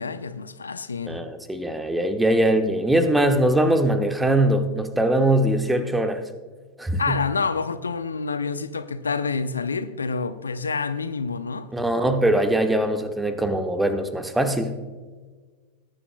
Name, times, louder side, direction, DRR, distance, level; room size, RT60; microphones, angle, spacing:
voice 1, 0.0-1.2 7.0-11.7, left 4 dB, 75° left, 0.6 m, -28 dB
voice 2, 1.1-6.2 6.8-7.2 11.7-14.7, right 1 dB, 5° right, 1.1 m, -21 dB
19.0 x 11.0 x 2.2 m
figure-of-eight pair, 90°, 0 cm